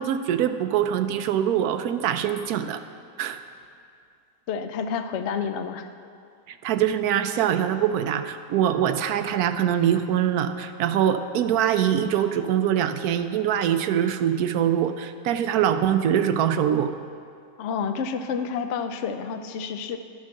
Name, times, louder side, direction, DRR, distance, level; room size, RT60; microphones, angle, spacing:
voice 1, 0.0-2.8 3.2-3.4 6.5-16.9, right 9 dB, 70° right, 9 dB, 1.0 m, -23 dB
voice 2, 4.5-5.9 17.6-20.0, left 6 dB, 65° left, 8 dB, 0.7 m, -29 dB
11.0 x 7.3 x 6.4 m, 2.3 s
omnidirectional pair, 1.8 m